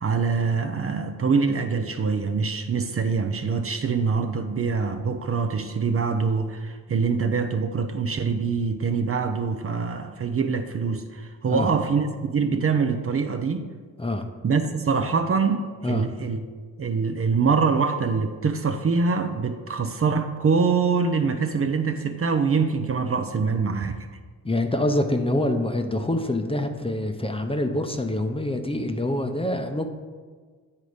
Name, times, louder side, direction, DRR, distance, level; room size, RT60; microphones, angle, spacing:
voice 1, 0.0-13.7 14.4-16.4 16.8-24.1, right 5 dB, 40° right, 7 dB, 0.6 m, -24 dB
voice 2, 24.4-29.9, left 1 dB, 15° left, 5 dB, 0.7 m, -25 dB
9.5 x 4.0 x 5.0 m, 1.5 s
cardioid pair, 70°, 35 cm